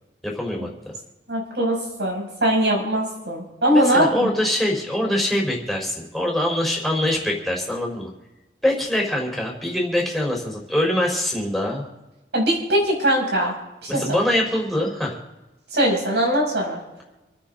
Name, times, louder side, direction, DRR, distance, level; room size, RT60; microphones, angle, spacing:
voice 1, 0.2-0.7 3.7-8.1 8.6-11.8 13.9-15.2, left 1 dB, ahead, -2 dB, 4.0 m, -23 dB
voice 2, 1.3-4.3 5.0-5.2 12.3-13.5 13.8-14.2 15.7-16.8, right 1 dB, 75° right, -1 dB, 6.1 m, -21 dB
27.5 x 9.8 x 3.8 m, 1.1 s
head